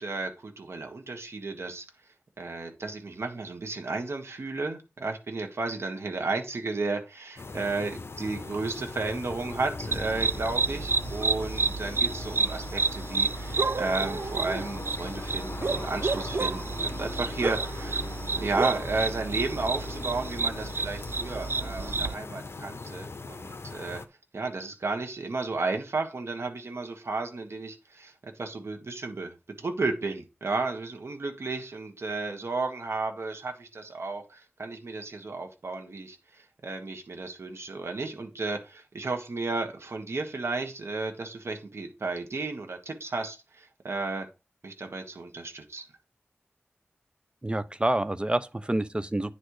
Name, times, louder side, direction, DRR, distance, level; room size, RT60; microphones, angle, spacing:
voice 1, 0.0-1.8 2.4-18.0 18.4-24.0 24.3-44.3 44.6-45.8, right 3 dB, 80° right, 1.4 m, -33 dB
sound 1, 7.4-24.1, left 3 dB, 75° left, 0.8 m, -40 dB
sound 2, 9.4-22.2, left 2 dB, 40° left, 1.3 m, -46 dB
sound 3, 9.9-22.1, right 4 dB, 60° right, 0.4 m, -30 dB
voice 2, 47.4-49.3, right 1 dB, 25° right, 0.6 m, -28 dB
9.8 x 4.3 x 4.8 m
wide cardioid pair, 60°, 4 cm